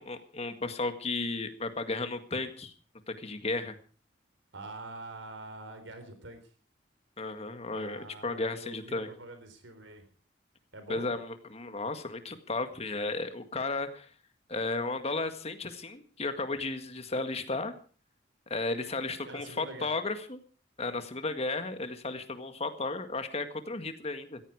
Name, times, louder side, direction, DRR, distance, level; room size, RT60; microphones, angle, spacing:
voice 1, 0.0-2.7 3.1-3.8 7.2-9.1 10.9-14.1 14.5-17.7 18.5-20.4 20.8-24.4, left 3 dB, 35° left, 9 dB, 1.8 m, -34 dB
voice 2, 4.5-6.4 7.7-10.0 10.7-11.1 19.2-19.9, right 2 dB, 85° right, 8 dB, 4.0 m, -45 dB
16.5 x 15.0 x 4.8 m, 0.40 s
head